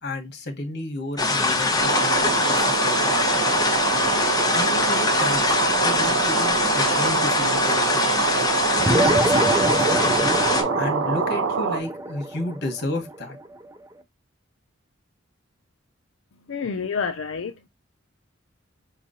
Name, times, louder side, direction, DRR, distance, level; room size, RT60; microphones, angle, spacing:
voice 1, 0.0-3.5 4.5-8.5 8.9-10.4 10.8-13.4, left 1 dB, 55° left, 1.2 m, -32 dB
sound 1, 1.2-10.6, left 3 dB, 20° left, 0.9 m, -23 dB
sound 2, 1.8-11.8, right 5 dB, 90° right, 0.6 m, -25 dB
sound 3, 8.8-13.6, right 1 dB, 15° right, 0.5 m, -25 dB
voice 2, 16.3-17.7, left 5 dB, 80° left, 0.5 m, -29 dB
5.5 x 3.0 x 2.6 m
head